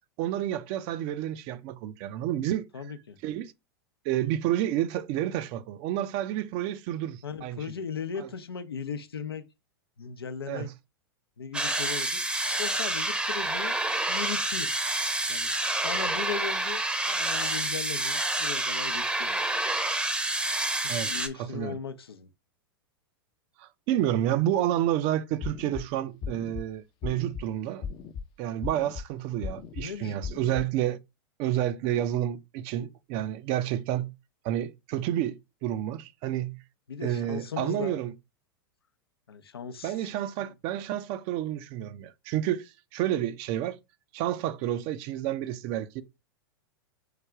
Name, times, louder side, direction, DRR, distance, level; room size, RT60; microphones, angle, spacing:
voice 1, 0.2-2.6 3.2-3.5 4.0-7.6 10.5-10.7 20.9-21.1 21.4-21.8 23.6-27.9 28.4-31.0 31.4-34.1 34.4-36.6 37.0-38.1 39.8-43.8 44.1-46.0, right 12 dB, 45° right, 0.5 m, -30 dB
voice 2, 2.7-3.2 7.2-9.5 10.0-10.7 11.4-12.2 12.6-13.8 14.1-14.7 15.3-15.5 15.8-19.4 20.8-22.3 29.8-30.2 36.9-38.0 39.3-40.1 40.4-40.5, left 6 dB, 90° left, 0.6 m, -37 dB
sound 1, 11.5-21.3, right 2 dB, 10° right, 0.7 m, -28 dB
sound 2, 25.4-25.8 26.2-26.6 27.0-27.4 27.8-28.2 28.6-29.0 29.4-29.8 30.2-30.6, left 6 dB, 40° left, 0.5 m, -36 dB
4.8 x 2.3 x 4.7 m
hypercardioid pair, 105°, 12 cm